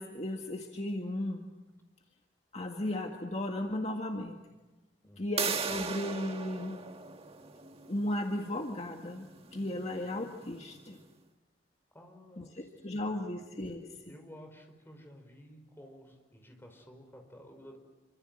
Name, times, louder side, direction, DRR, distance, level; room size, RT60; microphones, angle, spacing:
voice 1, 0.0-1.4 2.5-4.4 5.2-6.8 7.9-9.3 9.5-11.0 12.4-13.9, left 1 dB, 40° left, 2 dB, 1.9 m, -35 dB
sound 1, 5.4-11.0, right 5 dB, 35° right, 1.9 m, -39 dB
voice 2, 11.9-13.6 14.1-17.8, equal, 15° left, 4 dB, 5.2 m, -53 dB
28.5 x 26.0 x 7.8 m, 1.1 s
head